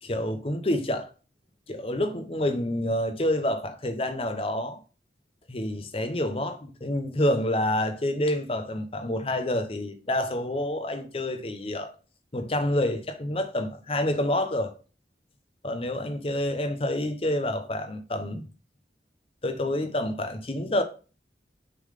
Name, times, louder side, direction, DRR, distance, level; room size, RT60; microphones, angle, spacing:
voice 1, 0.0-1.1 1.7-4.8 5.5-11.9 12.3-14.7 15.6-18.4 19.4-20.8, left 1 dB, 30° left, 0.8 m, -28 dB
6.7 x 3.8 x 5.0 m
head